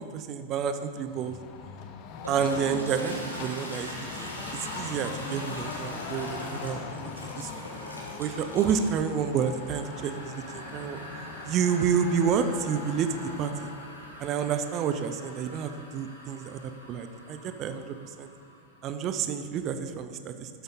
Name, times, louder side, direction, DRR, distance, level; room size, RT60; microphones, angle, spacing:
voice 1, 0.0-1.4 2.3-6.9 7.4-7.5 8.2-11.0 11.4-13.7 14.2-18.3 18.8-20.5, right 7 dB, 35° right, 9 dB, 0.6 m, -29 dB
sound 1, 1.1-13.9, left 5 dB, 40° left, 0.9 m, -41 dB
Toilet flush, 2.1-18.8, equal, 85° left, 1.9 m, -42 dB
12.0 x 8.0 x 3.9 m, 2.3 s
figure-of-eight pair, 90°, 0 cm